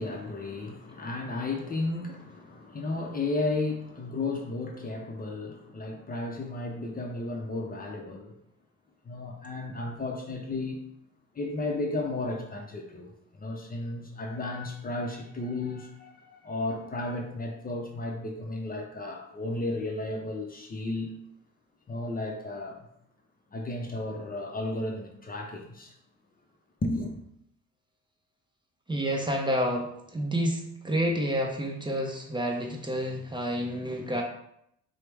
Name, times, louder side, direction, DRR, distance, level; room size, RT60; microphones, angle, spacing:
voice 1, 0.0-8.3 9.0-10.8 11.3-21.1 21.9-22.9 23.5-25.9 26.8-27.2, left 2 dB, 30° left, 2 dB, 0.5 m, -33 dB
voice 2, 28.9-34.2, equal, 15° right, 1 dB, 0.6 m, -29 dB
4.4 x 2.0 x 3.3 m, 0.75 s
cardioid pair, 90°, 30 cm